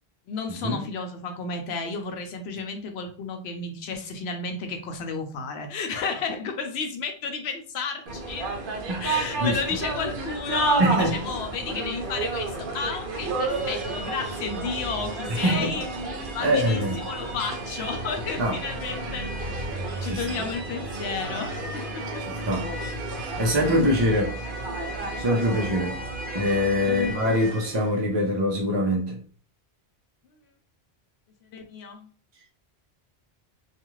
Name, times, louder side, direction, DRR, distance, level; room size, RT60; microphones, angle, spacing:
voice 1, 0.3-8.5 9.0-15.9 16.3-19.3 20.0-22.0 26.9-27.3 31.5-32.1, left 5 dB, 90° left, 0.9 m, -32 dB
sound 1, 8.1-27.9, right 2 dB, 60° right, 0.8 m, -31 dB
voice 2, 10.8-11.1 15.3-15.7 16.4-17.0 18.4-18.6 20.0-20.2 22.2-23.0 23.4-24.4 25.2-25.9 26.3-29.2, equal, 40° right, 0.4 m, -24 dB
2.4 x 2.3 x 3.0 m
omnidirectional pair, 1.0 m